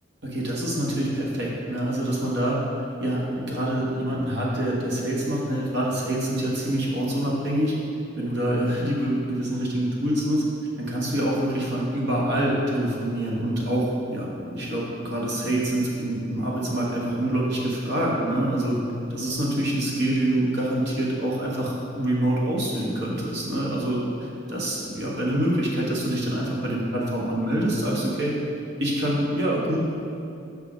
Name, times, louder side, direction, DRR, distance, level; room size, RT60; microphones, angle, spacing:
voice 1, 0.2-2.6 3.0-7.7 8.2-10.4 10.8-18.8 19.1-28.3 28.8-29.8, right 1 dB, 60° right, -4 dB, 1.5 m, -26 dB
6.1 x 5.5 x 5.2 m, 2.7 s
head